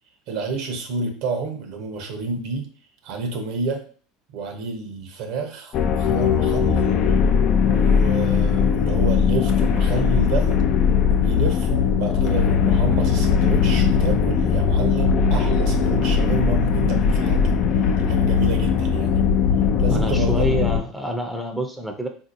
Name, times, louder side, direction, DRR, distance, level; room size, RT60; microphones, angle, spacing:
voice 1, 0.3-2.7 3.0-3.8 4.3-7.0 7.6-10.6 11.1-17.4 17.7-19.2 19.8-20.6, right 3 dB, 65° right, 5 dB, 0.8 m, -29 dB
sound 1, 5.7-20.8, left 6 dB, 50° left, 0.4 m, -19 dB
voice 2, 19.9-22.1, right 1 dB, ahead, 3 dB, 0.6 m, -27 dB
3.8 x 2.7 x 2.6 m, 0.42 s
supercardioid pair, 110°, 0 cm